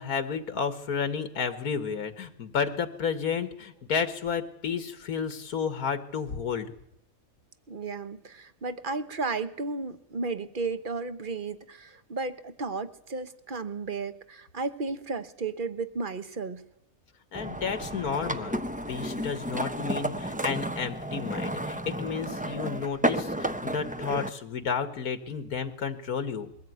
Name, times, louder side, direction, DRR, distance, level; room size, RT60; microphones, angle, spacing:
voice 1, 0.0-6.7 17.3-26.5, left 6 dB, 90° left, 10 dB, 1.9 m, -32 dB
voice 2, 7.7-16.6, right 4 dB, 40° right, 12 dB, 1.2 m, -34 dB
sound 1, 17.3-24.3, equal, 10° right, 0.6 m, -32 dB
21.5 x 15.5 x 9.3 m, 0.78 s
omnidirectional pair, 1.5 m